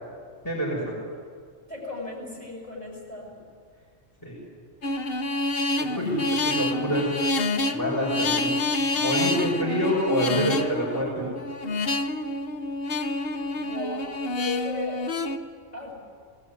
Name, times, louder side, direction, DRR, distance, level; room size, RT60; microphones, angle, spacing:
voice 1, 0.4-0.9 4.2-4.4 5.8-7.2 7.7-8.5 9.0-11.2, equal, 15° left, -6 dB, 6.4 m, -27 dB
voice 2, 1.7-3.3 9.1-9.4 13.5-15.0 15.7-15.9, left 3 dB, 30° left, -3 dB, 8.0 m, -36 dB
sound 1, 4.8-15.4, left 2 dB, 50° left, 1.2 m, -27 dB
21.5 x 19.0 x 9.7 m, 2.1 s
omnidirectional pair, 1.3 m